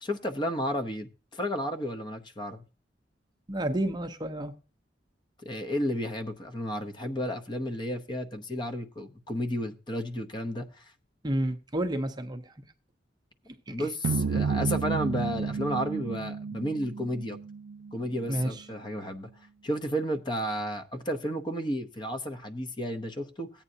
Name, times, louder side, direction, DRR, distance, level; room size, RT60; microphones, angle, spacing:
voice 1, 0.0-2.6 5.4-10.9 13.7-17.4 17.9-19.3 19.6-23.5, equal, 25° left, 0.8 m, -32 dB
voice 2, 3.5-4.5 11.2-12.7 13.5-13.9 18.3-18.7, right 1 dB, 20° right, 0.7 m, -31 dB
sound 1, 14.0-18.4, right 5 dB, 80° right, 0.4 m, -31 dB
15.0 x 8.8 x 2.8 m
head